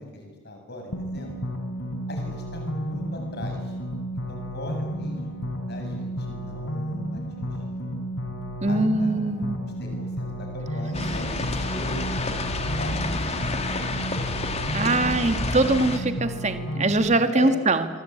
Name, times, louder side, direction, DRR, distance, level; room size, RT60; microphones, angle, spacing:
voice 1, 0.0-1.4 2.1-3.8 4.3-5.2 5.7-7.9 8.7-12.3 12.8-13.0 13.3-13.6 14.1-15.2 17.3-17.5, left 1 dB, 50° left, 4 dB, 7.3 m, -39 dB
sound 1, 0.9-16.9, equal, 70° left, 4.7 m, -32 dB
voice 2, 8.6-9.8 14.7-17.9, right 2 dB, 30° right, 8 dB, 1.8 m, -23 dB
sound 2, 10.9-16.0, left 2 dB, 30° left, 2.5 m, -29 dB
26.0 x 24.5 x 9.0 m, 1.3 s
head